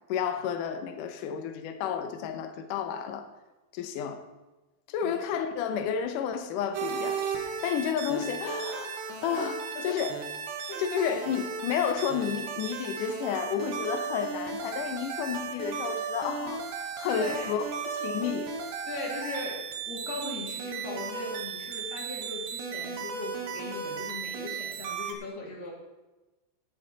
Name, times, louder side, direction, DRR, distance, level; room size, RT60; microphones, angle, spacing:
voice 1, 0.1-3.3 3.7-4.2 4.9-9.0 9.2-10.2 10.8-16.6 17.0-18.5, left 7 dB, 80° left, 7 dB, 1.9 m, -31 dB
sound 1, 6.7-25.1, right 6 dB, 75° right, 3.5 m, -35 dB
voice 2, 17.0-17.6 18.9-25.7, left 3 dB, 65° left, -2 dB, 4.6 m, -38 dB
17.5 x 8.0 x 4.1 m, 1.1 s
omnidirectional pair, 5.1 m